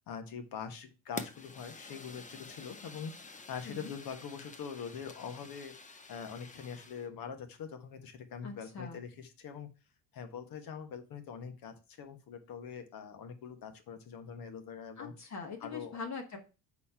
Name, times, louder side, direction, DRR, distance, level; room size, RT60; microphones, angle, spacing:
voice 1, 0.1-5.7 6.1-9.7 10.1-15.1 15.6-16.0, left 7 dB, 60° left, 8 dB, 1.4 m, -43 dB
Fire, 1.2-7.1, left 3 dB, 20° left, 0.9 m, -48 dB
voice 2, 8.4-9.0 15.0-16.4, left 5 dB, 45° left, 3 dB, 1.5 m, -42 dB
4.3 x 4.1 x 5.6 m, 0.31 s
supercardioid pair, 85°, 38 cm